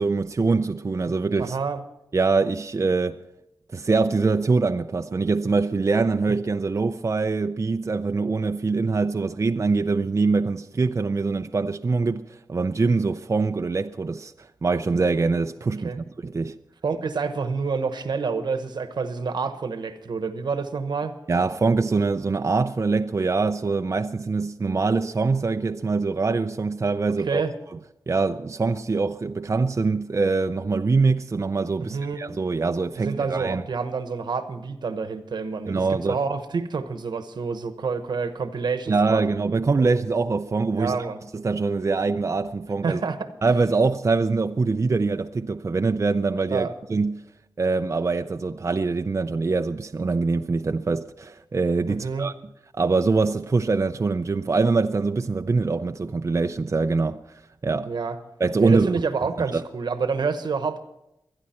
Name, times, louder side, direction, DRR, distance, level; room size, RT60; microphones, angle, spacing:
voice 1, 0.0-1.6 2.1-3.2 3.7-16.5 21.3-27.4 28.1-33.6 35.7-36.2 38.9-41.0 41.3-43.0 43.4-47.2 47.6-52.3 52.7-57.2 57.6-57.9 58.4-58.9 59.5-59.6, right 4 dB, 40° right, 0.5 m, -23 dB
voice 2, 1.4-1.8 15.8-16.0 16.8-21.1 27.3-27.5 31.8-32.2 33.0-39.3 39.8-39.9 40.8-41.2 42.8-43.3 46.5-46.7 51.9-52.3 57.9-58.2 58.6-60.8, right 5 dB, 75° right, 1.1 m, -28 dB
24.5 x 9.8 x 4.4 m
cardioid pair, 65°, 8 cm